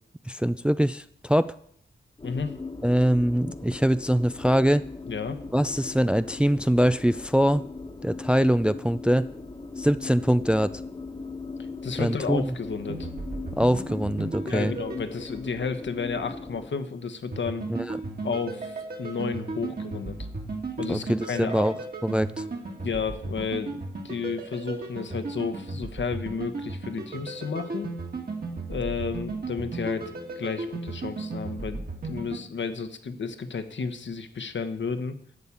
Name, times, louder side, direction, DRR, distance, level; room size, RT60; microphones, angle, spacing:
voice 1, 0.3-1.5 2.8-4.8 5.5-7.6 8.0-9.3 9.8-10.7 12.0-12.5 13.6-14.7 17.7-18.0 20.9-21.7 22.0-22.4, equal, 5° right, 13 dB, 0.3 m, -23 dB
voice 2, 2.2-2.5 5.1-5.4 11.8-13.1 14.4-17.7 18.2-20.2 20.8-21.7 22.8-27.9 28.7-30.1 30.4-35.1, left 5 dB, 70° left, 7 dB, 1.2 m, -32 dB
sound 1, 2.2-16.7, left 3 dB, 25° left, 1.3 m, -39 dB
sound 2, 12.8-15.8 17.3-32.4, right 3 dB, 50° right, 2.4 m, -35 dB
12.0 x 5.5 x 8.5 m, 0.66 s
wide cardioid pair, 90°, 20 cm